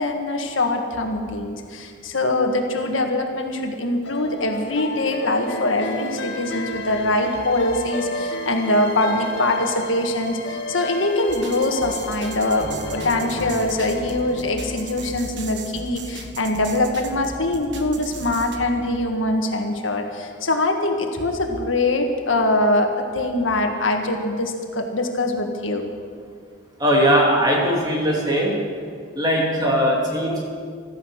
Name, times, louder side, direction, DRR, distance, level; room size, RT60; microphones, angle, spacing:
voice 1, 0.0-25.9, left 2 dB, 85° left, 3 dB, 1.8 m, -23 dB
sound 1, 4.0-15.3, left 1 dB, 65° left, 1.5 m, -32 dB
sound 2, 11.3-18.6, right 3 dB, 65° right, 1.4 m, -37 dB
voice 2, 26.8-28.5 29.1-30.4, equal, 20° right, -2 dB, 2.9 m, -19 dB
15.5 x 13.5 x 6.5 m, 2.1 s
head